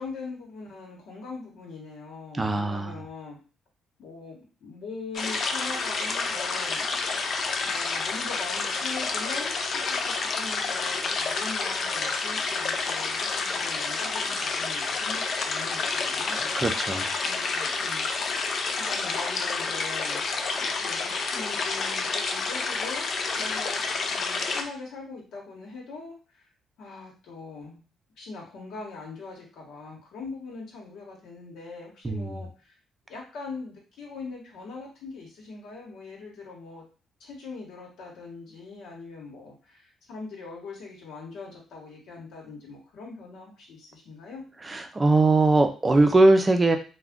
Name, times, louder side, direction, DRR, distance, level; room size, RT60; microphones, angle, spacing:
voice 1, 0.0-3.4 4.0-6.9 7.6-16.5 17.2-18.3 18.7-20.2 20.6-23.1 23.4-23.8 24.1-26.4 26.8-27.8 28.2-32.7 33.1-36.8 37.2-44.4, left 4 dB, 80° left, -2 dB, 1.1 m, -41 dB
voice 2, 2.4-3.0 16.5-17.1 32.0-32.4 44.6-46.8, right 2 dB, 25° right, 6 dB, 0.5 m, -21 dB
sound 1, 5.1-24.6, left 4 dB, 55° left, 0.4 m, -29 dB
2.4 x 2.2 x 3.5 m, 0.36 s
cardioid pair, 90°, 0 cm